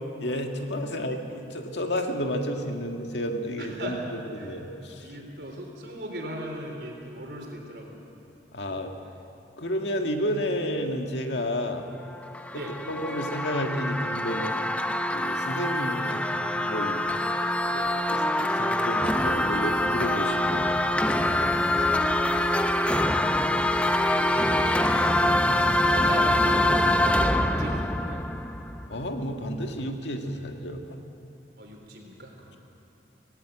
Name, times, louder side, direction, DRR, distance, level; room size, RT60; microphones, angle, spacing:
voice 1, 0.2-4.0 4.3-5.0 8.5-8.9 9.6-11.9 12.5-14.5 15.1-16.2 16.6-17.0 18.1-20.7 28.9-31.0, equal, 80° left, 3 dB, 1.9 m, -31 dB
voice 2, 3.6-4.6 5.0-8.0 12.5-12.7 17.7-17.9 18.5-19.1 21.4-21.5 21.8-22.6 23.7-24.8 25.5-28.2 31.6-32.6, right 1 dB, 65° right, 1 dB, 3.7 m, -40 dB
sound 1, 12.1-29.1, left 1 dB, 5° left, 0.6 m, -25 dB
19.0 x 17.5 x 8.0 m, 2.9 s
head